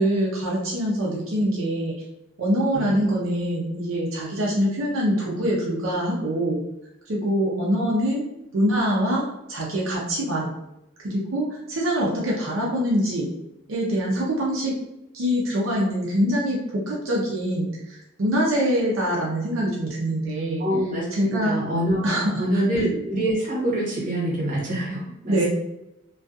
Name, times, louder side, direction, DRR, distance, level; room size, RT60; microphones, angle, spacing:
voice 1, 0.0-1.9 2.4-6.6 7.1-8.2 8.5-10.5 11.0-13.3 13.7-14.7 15.1-20.6 21.1-21.6 22.0-22.6 25.3-25.4, equal, 80° right, -4 dB, 0.6 m, -24 dB
voice 2, 2.7-3.1 20.6-22.1 22.4-25.5, right 1 dB, 40° right, -5 dB, 0.9 m, -25 dB
2.5 x 2.3 x 2.3 m, 0.87 s
head